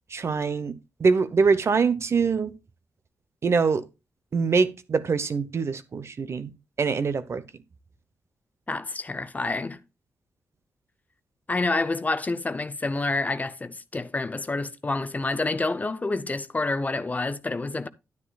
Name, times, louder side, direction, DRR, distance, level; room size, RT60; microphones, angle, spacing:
voice 1, 0.1-0.7 1.0-2.5 3.4-3.9 4.3-6.5 6.8-7.4, right 5 dB, 50° right, 0.8 m, -24 dB
voice 2, 8.7-9.8 11.5-17.9, left 3 dB, 25° left, 0.6 m, -28 dB
10.5 x 9.8 x 2.3 m
cardioid pair, 70°, 6 cm